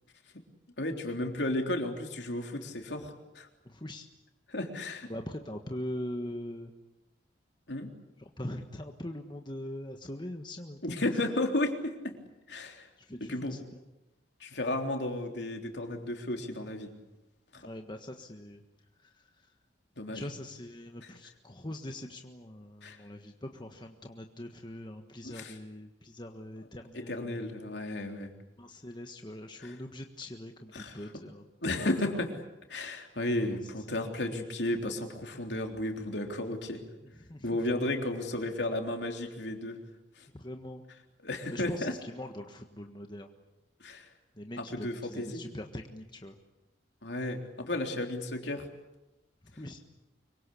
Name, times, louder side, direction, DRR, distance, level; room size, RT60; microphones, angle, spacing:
voice 1, 0.8-3.5 4.5-5.1 7.7-7.9 10.8-12.2 12.5-12.9 13.3-13.6 14.4-16.9 17.5-17.7 20.0-20.3 22.8-23.0 25.2-25.6 26.9-28.3 29.6-29.8 30.7-31.1 31.6-32.4 32.7-36.8 37.4-39.8 40.2-40.3 41.2-41.9 43.8-44.1 44.6-45.4 47.0-48.7, left 1 dB, 65° left, 4 dB, 3.6 m, -33 dB
voice 2, 3.6-4.1 5.1-6.7 8.2-11.0 13.1-13.6 17.6-18.6 20.1-27.3 28.6-31.4 31.8-32.2 33.4-33.6 34.0-34.3 37.2-37.5 40.3-40.8 41.5-43.3 44.4-46.4 49.6-49.8, left 1 dB, 25° left, 4 dB, 1.5 m, -42 dB
25.0 x 24.0 x 8.5 m, 0.95 s
head